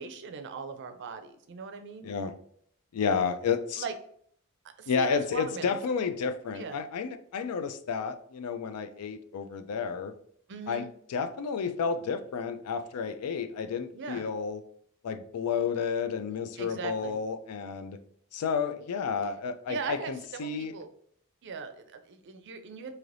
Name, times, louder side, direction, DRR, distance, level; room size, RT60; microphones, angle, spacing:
voice 1, 0.0-2.1 3.8-3.9 4.8-5.8 6.5-6.8 10.5-10.9 13.9-14.3 16.6-17.2 19.7-20.9 21.4-22.9, right 5 dB, 55° right, 8 dB, 0.4 m, -39 dB
voice 2, 2.9-3.8 4.9-10.1 10.7-14.6 15.0-18.0 18.3-20.7, left 6 dB, 90° left, 9 dB, 0.4 m, -31 dB
3.2 x 2.8 x 2.5 m, 0.63 s
head